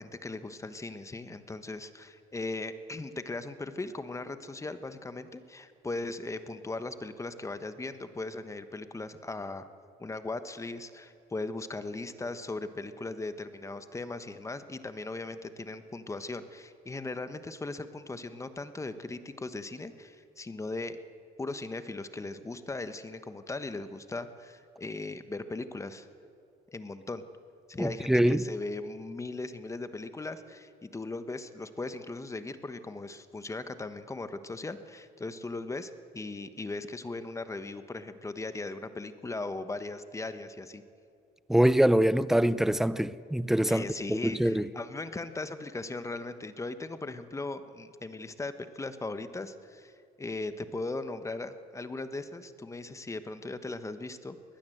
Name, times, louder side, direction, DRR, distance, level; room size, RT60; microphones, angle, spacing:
voice 1, 0.0-9.7 10.0-21.0 21.4-26.1 26.7-27.2 27.7-40.8 43.7-49.9 50.2-54.4, left 2 dB, 15° left, 1.2 m, -38 dB
voice 2, 27.8-28.4 41.5-44.7, right 1 dB, ahead, 0.6 m, -24 dB
21.5 x 19.0 x 7.9 m
cardioid pair, 110°, 17 cm